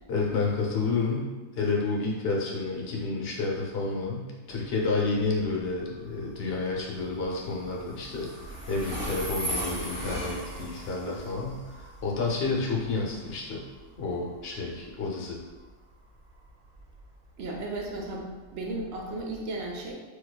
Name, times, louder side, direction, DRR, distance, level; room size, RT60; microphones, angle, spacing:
voice 1, 0.1-13.6 14.0-15.4, left 3 dB, 55° left, -2 dB, 0.7 m, -30 dB
Train, 4.5-19.2, right 1 dB, 5° right, 0.9 m, -40 dB
voice 2, 17.4-19.9, right 2 dB, 65° right, 0 dB, 0.7 m, -35 dB
4.3 x 2.3 x 2.2 m, 1.2 s
omnidirectional pair, 1.4 m